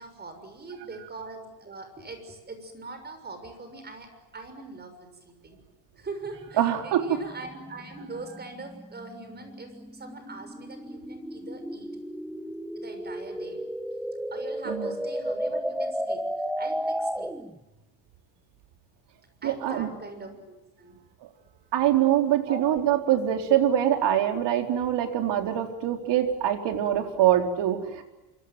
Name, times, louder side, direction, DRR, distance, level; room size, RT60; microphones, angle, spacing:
voice 1, 0.0-5.6 6.0-11.9 12.7-13.6 14.3-16.2 16.6-17.3 19.4-21.0 22.5-22.7, right 3 dB, 20° right, 8 dB, 6.7 m, -42 dB
sound 1, 6.3-17.6, equal, ahead, 1.1 m, -34 dB
voice 2, 6.6-7.2 14.7-14.9 19.4-19.9 21.7-28.0, right 11 dB, 60° right, 5 dB, 4.4 m, -24 dB
26.5 x 25.0 x 7.8 m, 1.0 s
cardioid pair, 150°, 47 cm